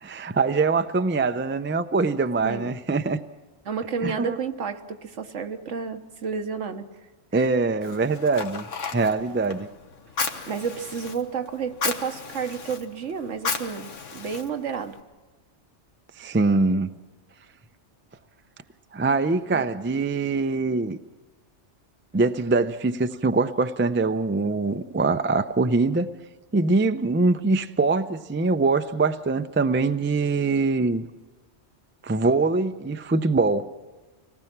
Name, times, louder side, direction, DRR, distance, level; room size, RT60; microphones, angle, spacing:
voice 1, 0.0-3.2 4.0-4.4 7.3-8.6 8.9-9.7 16.2-16.9 18.9-21.0 22.1-26.1 26.5-31.0 32.0-33.7, right 3 dB, 20° right, 10 dB, 0.3 m, -23 dB
voice 2, 3.6-6.9 7.3-7.5 10.5-15.0 19.5-19.6, right 6 dB, 75° right, 7 dB, 1.4 m, -31 dB
Fire, 7.8-15.0, left 5 dB, 80° left, 1.5 m, -34 dB
25.5 x 18.5 x 6.0 m, 1.2 s
omnidirectional pair, 1.3 m